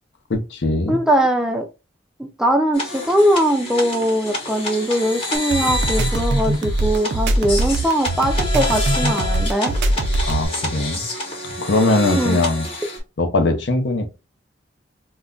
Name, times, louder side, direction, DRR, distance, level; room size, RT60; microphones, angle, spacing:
voice 1, 0.3-1.0 10.2-11.1 11.6-12.7 13.2-14.1, left 2 dB, 70° left, 0.6 m, -20 dB
voice 2, 0.9-1.7 2.2-9.7 12.1-12.4, right 1 dB, 5° right, 0.3 m, -20 dB
sound 1, 2.7-13.0, left 1 dB, 30° left, 0.9 m, -28 dB
sound 2, 5.3-10.5, right 1 dB, 65° right, 0.5 m, -21 dB
2.3 x 2.1 x 3.7 m
head